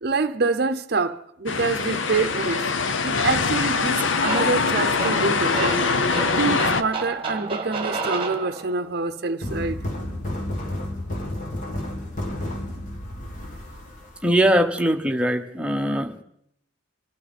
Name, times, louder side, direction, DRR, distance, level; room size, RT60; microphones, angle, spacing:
voice 1, 0.0-2.7 3.0-5.8 6.4-9.8, right 4 dB, 50° right, 0.7 m, -26 dB
sound 1, 1.5-6.8, left 4 dB, 75° left, 0.8 m, -23 dB
sound 2, 4.2-9.0, right 3 dB, 25° right, 1.3 m, -31 dB
sound 3, 9.4-14.6, left 1 dB, 40° left, 2.0 m, -31 dB
voice 2, 14.2-16.2, equal, 5° right, 1.0 m, -21 dB
25.0 x 12.5 x 4.2 m
head